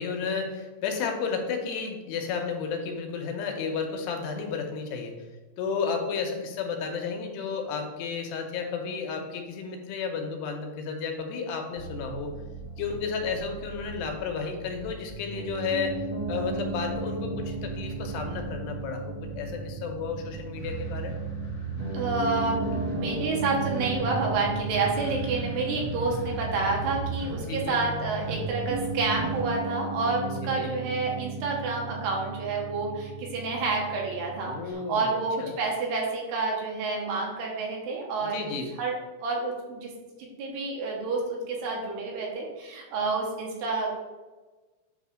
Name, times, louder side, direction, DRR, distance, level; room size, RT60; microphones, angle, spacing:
voice 1, 0.0-5.2 5.6-12.3 12.8-16.0 16.3-21.2 25.6-25.8 27.5-27.8 30.4-30.7 34.4-35.6 38.2-38.7, left 5 dB, 80° left, 3 dB, 2.9 m, -32 dB
sound 1, 11.8-29.4, right 3 dB, 40° left, 1.1 m, -37 dB
Piano, 15.3-34.7, right 3 dB, 45° right, 1.8 m, -36 dB
voice 2, 21.9-38.5 38.8-39.9 40.4-43.9, right 3 dB, 75° right, -1 dB, 3.2 m, -29 dB
8.3 x 3.3 x 6.1 m, 1.2 s
omnidirectional pair, 5.0 m